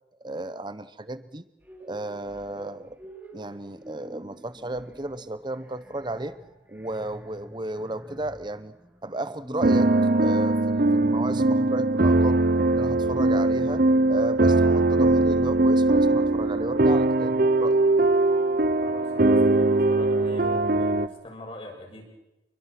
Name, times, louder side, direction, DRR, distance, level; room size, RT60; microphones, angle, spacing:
voice 1, 0.2-1.5 1.8-3.0 3.3-6.3 6.7-8.8 9.0-9.9 10.2-12.4 12.7-17.8, right 2 dB, 25° right, 13 dB, 1.0 m, -34 dB
sound 1, 1.6-17.0, right 1 dB, 10° right, 3.4 m, -47 dB
sound 2, 9.6-21.1, right 2 dB, 50° right, 0.8 m, -21 dB
voice 2, 18.8-22.0, left 1 dB, 30° left, 0 dB, 7.0 m, -43 dB
28.0 x 23.0 x 6.1 m, 0.96 s
head